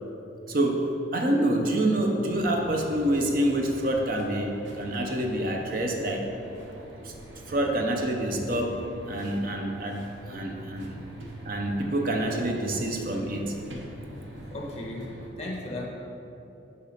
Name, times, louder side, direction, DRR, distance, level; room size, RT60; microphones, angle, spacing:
voice 1, 0.5-6.3 7.0-7.2 7.5-10.0 10.3-11.0 11.4-13.5, right 1 dB, 50° right, 2 dB, 0.7 m, -27 dB
sound 1, 2.3-15.3, right 1 dB, 80° right, 1.0 m, -43 dB
voice 2, 14.5-15.9, left 1 dB, 35° left, -2 dB, 1.2 m, -36 dB
6.7 x 5.4 x 5.0 m, 2.9 s
head